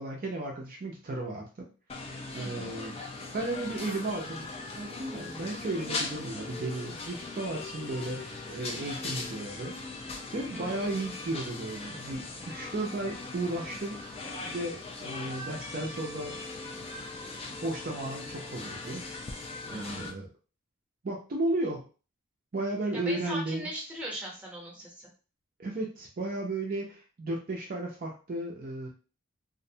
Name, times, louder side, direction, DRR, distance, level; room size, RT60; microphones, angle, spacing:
voice 1, 0.0-1.7 2.1-2.9 3.3-4.5 4.8-9.7 10.3-16.4 17.5-19.0 19.7-20.3 21.0-21.8 22.5-23.7 25.6-28.9, right 2 dB, 40° right, -1 dB, 0.4 m, -34 dB
sound 1, 1.9-20.1, left 3 dB, 30° left, 0.3 m, -40 dB
voice 2, 2.4-2.7 10.5-10.9 19.7-20.0 22.9-25.1, right 1 dB, 5° right, -3 dB, 0.7 m, -39 dB
2.5 x 2.1 x 2.7 m, 0.35 s
head